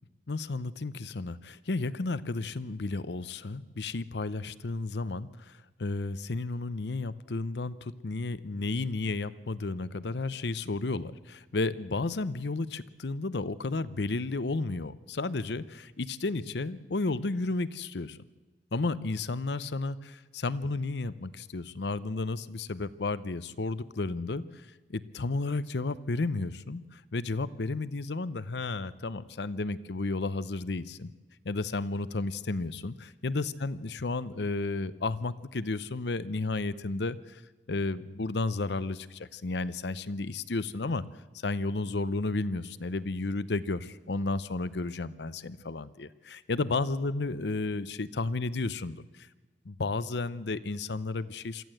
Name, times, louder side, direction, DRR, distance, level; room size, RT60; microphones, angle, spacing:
voice 1, 0.3-18.2 18.7-31.1 31.4-37.4 37.7-41.0 41.3-49.3 49.6-51.6, left 3 dB, 70° left, 16 dB, 0.7 m, -32 dB
23.5 x 14.5 x 7.8 m, 1.2 s
head